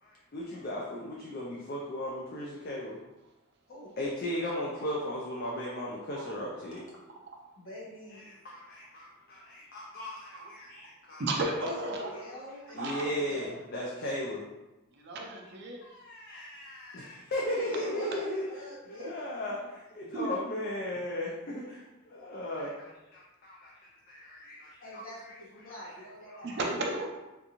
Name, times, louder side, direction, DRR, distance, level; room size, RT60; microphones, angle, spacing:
voice 1, 0.0-3.0 4.0-6.8 8.1-11.2 12.7-14.4 15.8-18.4 18.9-23.7 24.1-25.4 25.7-25.8 26.3-26.6, left 1 dB, 45° left, -4 dB, 0.4 m, -36 dB
voice 2, 7.6-8.3 11.4-13.6 17.4-19.1 22.1-22.4 24.8-26.6, left 1 dB, 75° left, -6 dB, 1.3 m, -46 dB
voice 3, 11.2-12.1 12.8-13.1 15.0-15.8 17.7-18.3 19.0-19.1 20.1-20.3 26.4-27.1, right 2 dB, 55° right, 0 dB, 0.5 m, -34 dB
3.5 x 2.5 x 2.9 m, 1.1 s
head